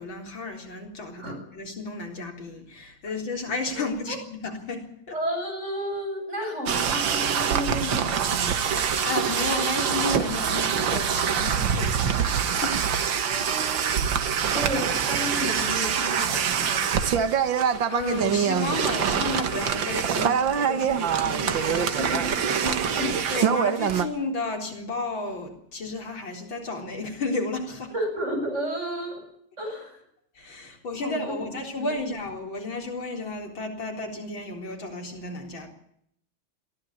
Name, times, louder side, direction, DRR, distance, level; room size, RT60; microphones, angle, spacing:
voice 1, 0.0-5.2 9.0-12.3 12.6-12.8 14.5-14.6 17.9-22.0 22.3-22.4 23.3-27.9 30.4-35.7, left 3 dB, 60° left, 2 dB, 4.6 m, -32 dB
voice 2, 3.7-4.2 5.1-8.5 13.2-14.0 14.5-17.0 22.0-23.2 23.5-23.6 27.9-29.2 29.6-30.0 31.0-31.4 31.8-32.1, equal, 30° right, 2 dB, 8.2 m, -32 dB
sound 1, 6.7-24.1, right 7 dB, 60° right, 2.0 m, -25 dB
22.5 x 15.5 x 8.6 m, 0.71 s
omnidirectional pair, 2.4 m